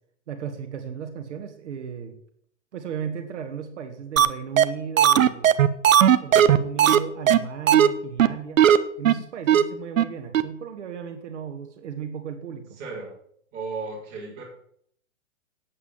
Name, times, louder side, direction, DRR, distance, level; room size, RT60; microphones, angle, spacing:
voice 1, 0.3-2.1 2.7-5.6 6.2-8.7 9.0-12.7, right 7 dB, 60° right, 6 dB, 1.9 m, -35 dB
sound 1, 4.2-4.3 4.6-4.7 5.0-7.0 7.3-7.4 7.7-7.9 8.2-8.3 8.6-8.8 9.0-9.1 9.5-9.6 10.0-10.1 10.3-10.4, right 10 dB, 75° right, 1.0 m, -16 dB
voice 2, 12.8-13.1 13.5-14.4, right 4 dB, 25° right, -4 dB, 5.5 m, -35 dB
9.4 x 8.7 x 7.3 m, 0.67 s
hypercardioid pair, 165°, 39 cm